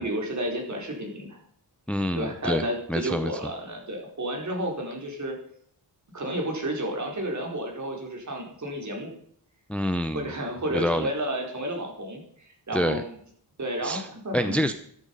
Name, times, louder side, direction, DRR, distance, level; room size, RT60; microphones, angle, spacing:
voice 1, 0.0-1.4 2.1-5.3 6.1-9.1 10.1-12.2 12.7-13.2 13.6-14.6, right 1 dB, 40° right, 1 dB, 4.7 m, -31 dB
voice 2, 1.9-3.3 9.7-10.3 10.7-11.1 12.7-13.0 13.8-14.1 14.3-14.7, equal, 5° left, 10 dB, 0.6 m, -27 dB
14.0 x 13.5 x 5.5 m, 0.65 s
wide cardioid pair, 175°, 42 cm